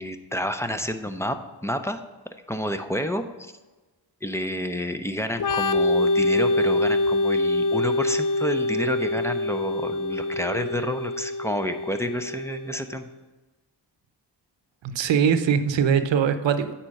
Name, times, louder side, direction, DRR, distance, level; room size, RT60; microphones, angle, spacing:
voice 1, 0.0-1.4 1.6-2.0 2.5-3.5 4.2-13.1, equal, 5° left, 8 dB, 0.7 m, -29 dB
Organ, 5.4-12.9, left 2 dB, 45° left, 0.5 m, -25 dB
voice 2, 14.8-16.8, right 7 dB, 80° right, 10 dB, 0.7 m, -22 dB
8.8 x 4.4 x 5.4 m, 1.2 s
cardioid pair, 55°, 44 cm